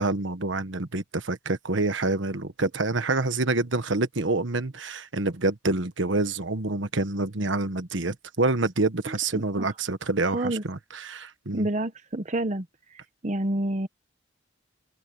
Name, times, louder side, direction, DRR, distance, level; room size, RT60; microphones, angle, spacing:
voice 1, 0.0-11.7, right 2 dB, 70° right, 1.4 m, -27 dB
voice 2, 9.3-9.7 10.3-10.6 11.5-12.6 13.2-13.9, right 1 dB, 40° right, 1.0 m, -28 dB
head